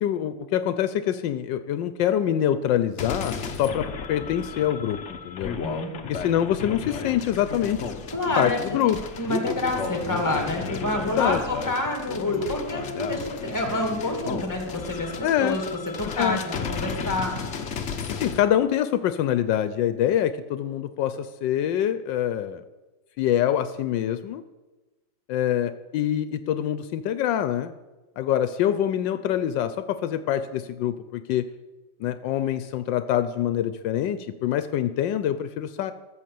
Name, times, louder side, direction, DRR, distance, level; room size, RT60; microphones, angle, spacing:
voice 1, 0.0-5.6 6.0-7.9 8.4-9.0 11.2-11.4 15.2-15.6 16.2-16.4 18.2-22.6 23.2-24.4 25.3-27.7 28.2-31.5 32.0-35.9, left 10 dB, 80° left, 12 dB, 1.3 m, -25 dB
sound 1, 3.0-18.4, left 5 dB, 50° left, 1.0 m, -33 dB
voice 2, 5.4-5.9 8.1-17.4, left 1 dB, 10° left, 2 dB, 2.2 m, -28 dB
14.0 x 6.7 x 7.6 m, 1.1 s
omnidirectional pair, 2.0 m